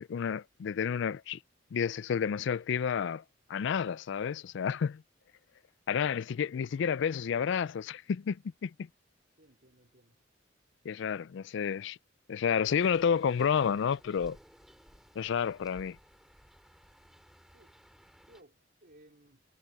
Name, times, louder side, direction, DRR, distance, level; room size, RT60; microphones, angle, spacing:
voice 1, 0.0-1.4 1.7-3.2 3.5-5.0 5.9-8.7 10.8-12.0 12.3-14.4 15.2-16.0, left 7 dB, 65° left, 0.4 m, -30 dB
voice 2, 9.3-10.2 11.6-11.7 17.5-17.8 18.3-19.4, right 1 dB, 50° right, 3.3 m, -60 dB
sound 1, 12.6-18.4, equal, ahead, 2.5 m, -59 dB
head